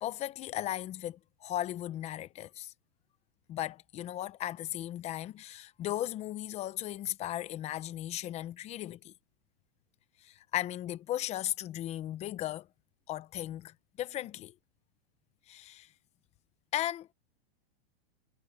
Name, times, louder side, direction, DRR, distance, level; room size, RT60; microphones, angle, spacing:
voice 1, 0.0-2.7 3.5-9.1 10.2-12.7 13.1-14.5 15.5-15.9 16.7-17.1, left 13 dB, 20° left, 0.8 m, -36 dB
supercardioid pair, 155°, 31 cm